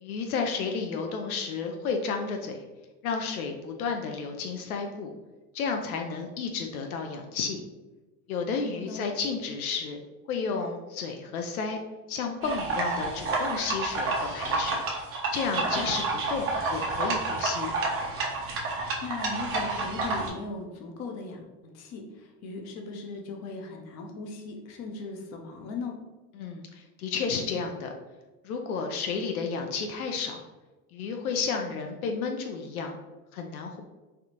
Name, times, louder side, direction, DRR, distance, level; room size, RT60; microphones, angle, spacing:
voice 1, 0.0-2.6 3.0-5.1 5.5-7.6 8.3-10.0 10.3-11.8 12.1-14.8 15.3-17.7 26.3-27.9 28.4-30.5 30.9-33.0 33.3-33.8, left 5 dB, 75° left, 3 dB, 0.5 m, -32 dB
sound 1, 12.4-20.3, right 3 dB, 30° right, 0.7 m, -29 dB
voice 2, 19.0-26.0, left 3 dB, 40° left, 3 dB, 0.7 m, -38 dB
3.4 x 2.4 x 2.7 m, 1.2 s
hypercardioid pair, 85°, 44 cm